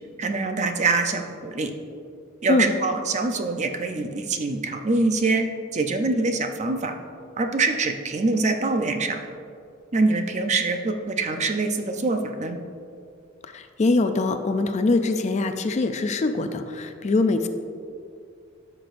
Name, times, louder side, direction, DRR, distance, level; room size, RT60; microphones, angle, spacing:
voice 1, 0.2-1.7 2.4-6.9 7.4-9.2 9.9-12.6, right 3 dB, 35° right, 6 dB, 0.5 m, -24 dB
voice 2, 13.5-17.5, left 3 dB, 35° left, 8 dB, 0.4 m, -23 dB
13.0 x 6.0 x 2.6 m, 2.3 s
head